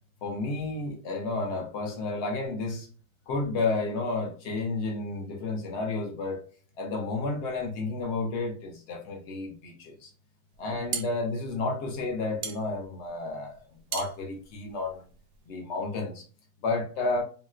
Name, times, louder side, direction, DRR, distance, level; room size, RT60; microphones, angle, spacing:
voice 1, 0.2-2.9 3.3-6.4 6.8-10.1 10.6-13.6 13.9-15.0 15.5-16.2 16.6-17.2, left 3 dB, 75° left, 0.6 m, -31 dB
sound 1, 10.5-15.5, right 8 dB, 90° right, 0.7 m, -39 dB
4.0 x 2.1 x 2.3 m
omnidirectional pair, 2.1 m